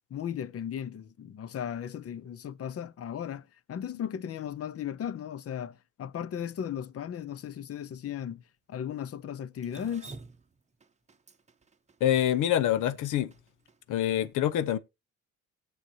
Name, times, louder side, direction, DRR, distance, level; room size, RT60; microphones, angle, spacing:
voice 1, 0.1-8.4 8.7-10.2, left 9 dB, 50° left, 0.8 m, -36 dB
Drip, 9.6-13.8, right 3 dB, 25° right, 0.7 m, -49 dB
voice 2, 12.0-13.3 13.9-14.8, left 11 dB, 80° left, 0.8 m, -26 dB
18.5 x 6.4 x 2.8 m
cardioid pair, 90°, 30 cm